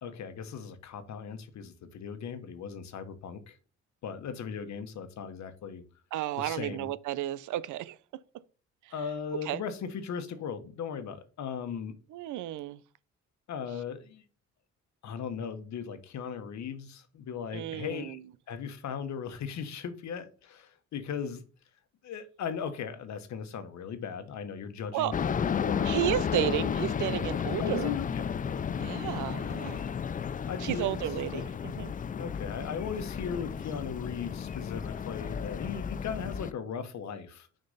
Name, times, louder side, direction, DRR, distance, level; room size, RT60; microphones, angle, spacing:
voice 1, 0.0-3.6 4.0-5.8 6.4-6.9 8.9-12.0 13.5-14.2 15.0-18.2 18.5-21.4 22.0-26.1 27.6-28.3 29.4-29.6 30.5-30.9 31.3-31.4 32.2-37.5, left 7 dB, 65° left, 1.2 m, -38 dB
voice 2, 6.1-8.0 9.5-9.6 12.1-12.8 17.5-18.2 24.9-25.1 25.8-27.9 28.8-29.8 30.6-31.9, right 13 dB, 80° right, 0.5 m, -32 dB
sound 1, 25.1-36.5, left 7 dB, 30° left, 0.4 m, -33 dB
6.4 x 4.4 x 4.0 m
cardioid pair, 90°, 30 cm